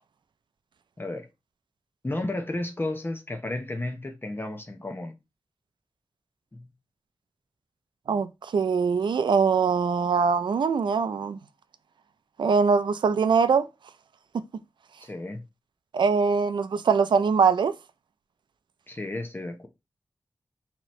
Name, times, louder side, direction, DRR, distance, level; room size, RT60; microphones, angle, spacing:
voice 1, 1.0-1.3 2.0-5.1 6.5-6.7 15.0-15.4 18.9-19.7, left 2 dB, 25° left, 0.7 m, -33 dB
voice 2, 8.1-11.4 12.4-13.7 15.9-17.7, right 5 dB, 80° right, 0.4 m, -22 dB
3.9 x 2.9 x 3.1 m
cardioid pair, 55°, 8 cm